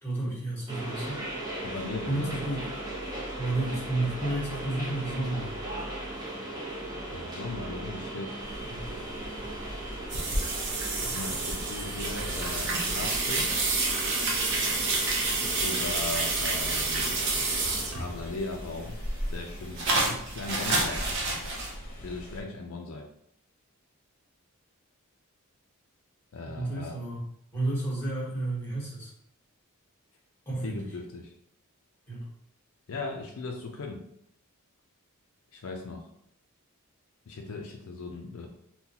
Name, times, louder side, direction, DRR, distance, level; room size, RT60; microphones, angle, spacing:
voice 1, 0.0-1.2 2.0-2.7 3.4-5.6 8.7-8.9 26.4-27.2 27.5-29.1 30.5-30.9 32.1-32.3, right 2 dB, 10° left, -6 dB, 1.2 m, -31 dB
sound 1, 0.7-17.9, right 1 dB, 20° right, 0.7 m, -37 dB
voice 2, 1.6-2.4 7.1-8.4 11.1-13.5 15.6-17.2 18.0-19.0 19.3-21.5 22.0-23.1 26.3-26.9 30.6-31.3 32.9-34.0 35.5-36.0 37.3-38.5, left 3 dB, 65° left, 1 dB, 0.4 m, -38 dB
sound 2, 8.4-22.4, equal, 40° left, 0.8 m, -44 dB
sound 3, 10.1-18.3 18.7-21.7, right 3 dB, 55° right, 0.7 m, -29 dB
3.7 x 2.2 x 2.8 m, 0.72 s
head